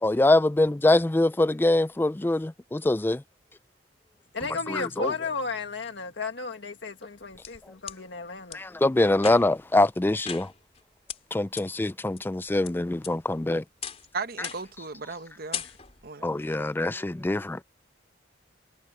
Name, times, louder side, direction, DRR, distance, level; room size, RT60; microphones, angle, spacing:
voice 1, 0.0-3.2 4.7-5.1 8.5-10.5 11.3-13.6 16.2-17.6, left 2 dB, 10° left, 0.3 m, -24 dB
voice 2, 4.3-8.6, left 4 dB, 70° left, 1.8 m, -33 dB
sound 1, 4.4-6.4, equal, 30° right, 6.4 m, -52 dB
sound 2, 7.0-8.0 8.5-8.6 9.1-9.7 10.2-10.8 11.1-11.2 11.6-11.7 12.2-12.7 13.0-13.4 13.8-14.1 14.4-14.8 15.1-15.2 15.5-16.1, left 8 dB, 35° left, 3.6 m, -38 dB
voice 3, 14.1-15.6 16.0-16.7, right 4 dB, 55° right, 1.0 m, -37 dB
head